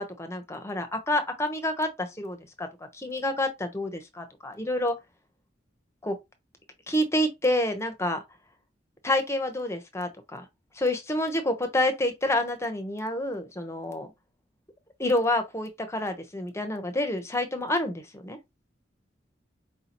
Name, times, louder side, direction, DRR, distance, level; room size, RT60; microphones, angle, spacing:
voice 1, 0.0-2.7 2.9-5.0 6.0-6.2 6.9-8.2 9.0-10.5 10.8-14.1 15.0-18.4, left 1 dB, 15° left, 0.7 m, -28 dB
4.8 x 2.8 x 2.9 m
head